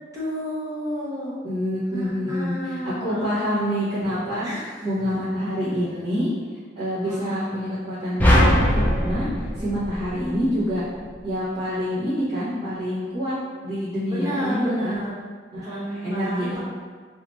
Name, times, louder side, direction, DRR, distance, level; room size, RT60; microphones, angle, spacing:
voice 1, 0.1-1.4 1.9-3.7 4.4-4.9 7.0-7.6 14.1-15.1 15.6-16.6, equal, 15° right, -8 dB, 0.8 m, -31 dB
voice 2, 1.4-4.5 4.8-6.3 6.8-9.3 9.6-10.8 11.2-13.3 13.6-15.0 15.5-16.6, equal, 35° right, -17 dB, 1.4 m, -27 dB
sound 1, 8.2-10.6, equal, 10° left, 0.4 m, -20 dB
3.1 x 3.1 x 2.9 m, 1.5 s
head